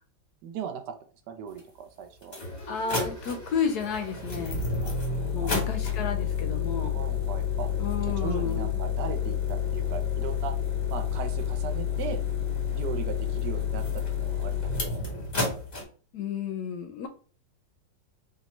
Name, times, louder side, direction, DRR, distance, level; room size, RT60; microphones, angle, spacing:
voice 1, 0.4-0.9 1.3-2.4 4.8-4.9 5.4-5.8 6.9-7.7 8.0-10.5 10.9-12.2 12.7-15.1, right 7 dB, 70° right, 6 dB, 1.1 m, -38 dB
sound 1, 1.6-1.7 2.2-15.8, left 6 dB, 35° left, 0.7 m, -29 dB
voice 2, 2.7-4.7 5.3-7.0 7.8-8.7 16.1-17.1, left 6 dB, 70° left, 7 dB, 1.0 m, -32 dB
4.3 x 2.6 x 3.0 m, 0.40 s
omnidirectional pair, 2.0 m